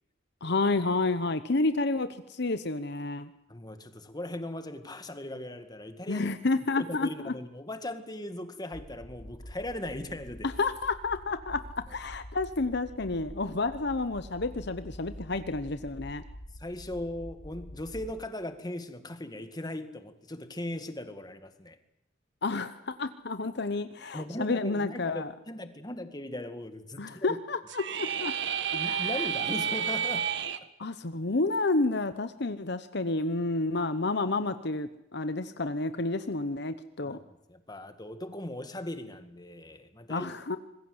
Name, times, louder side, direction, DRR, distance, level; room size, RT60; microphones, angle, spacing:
voice 1, 0.4-3.3 6.1-7.3 10.4-11.6 11.9-16.2 22.4-25.3 27.0-28.3 28.7-29.3 30.8-37.2 40.1-40.6, left 3 dB, 60° left, 11 dB, 1.0 m, -30 dB
voice 2, 3.5-6.3 6.8-10.5 16.6-21.8 24.1-27.4 28.7-30.3 37.0-37.2 37.5-40.3, left 1 dB, 20° left, 9 dB, 2.0 m, -38 dB
sound 1, 8.7-18.1, equal, 80° left, 5.1 m, -46 dB
sound 2, 27.7-30.6, right 8 dB, 65° right, 1.4 m, -30 dB
26.0 x 21.0 x 8.0 m, 0.83 s
head